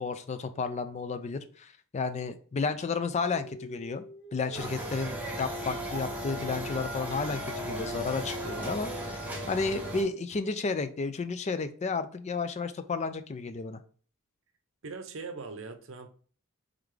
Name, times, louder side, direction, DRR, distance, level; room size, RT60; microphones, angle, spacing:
voice 1, 0.0-4.0 4.3-13.8, left 4 dB, 35° left, 11 dB, 0.4 m, -32 dB
sound 1, 3.2-6.1 7.1-10.1, left 1 dB, 55° left, 1.2 m, -46 dB
sound 2, 4.5-10.0, equal, 5° right, 1.0 m, -36 dB
voice 2, 14.8-16.1, right 4 dB, 65° right, 8 dB, 0.6 m, -40 dB
3.7 x 3.5 x 3.2 m, 0.44 s
head